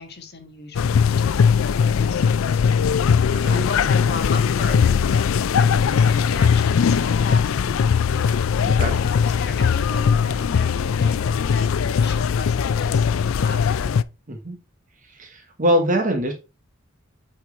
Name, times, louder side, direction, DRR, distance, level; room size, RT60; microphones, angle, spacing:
voice 1, 0.0-2.9 3.5-8.3 9.0-13.9, left 3 dB, 55° left, 5 dB, 1.5 m, -36 dB
sound 1, 0.7-14.0, left 6 dB, 80° left, 0.4 m, -20 dB
voice 2, 8.6-9.0 14.3-14.5 15.1-16.3, equal, 40° right, 3 dB, 1.2 m, -23 dB
8.4 x 4.4 x 3.2 m, 0.28 s
head